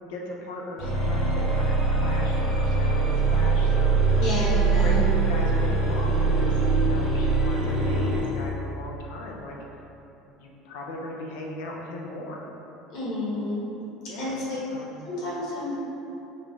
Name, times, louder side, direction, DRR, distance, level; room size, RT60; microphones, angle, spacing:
voice 1, 0.0-4.2 4.5-9.5 10.4-12.5 14.1-14.4 14.7-14.9, left 1 dB, 85° left, -1 dB, 0.6 m, -37 dB
sound 1, 0.8-8.3, right 3 dB, 5° left, 1.0 m, -22 dB
voice 2, 4.2-5.0 12.9-13.6 14.2-14.6 15.0-15.8, left 2 dB, 55° left, -7 dB, 1.2 m, -30 dB
5.2 x 2.5 x 3.2 m, 2.9 s
cardioid pair, 170°, 0 cm